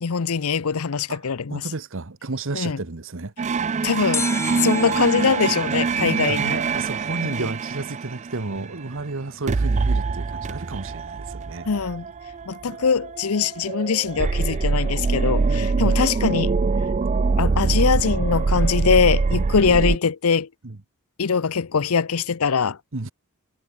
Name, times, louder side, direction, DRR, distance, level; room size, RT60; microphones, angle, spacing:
voice 1, 0.0-1.6 2.5-2.8 3.8-4.3 4.5-6.6 7.4-7.5 11.7-12.1 12.5-16.5 17.4-20.5 21.2-22.8, left 5 dB, 75° left, 0.7 m, -22 dB
voice 2, 1.5-3.3 6.3-11.7 12.6-12.8 15.5-16.0 19.3-19.5 20.6-20.8 22.9-23.1, right 3 dB, 60° right, 1.2 m, -32 dB
sound 1, 3.4-9.1 9.5-20.0, right 4 dB, 30° right, 0.4 m, -24 dB
sound 2, 4.1-7.2 7.5-7.6, left 4 dB, 10° left, 0.7 m, -34 dB
head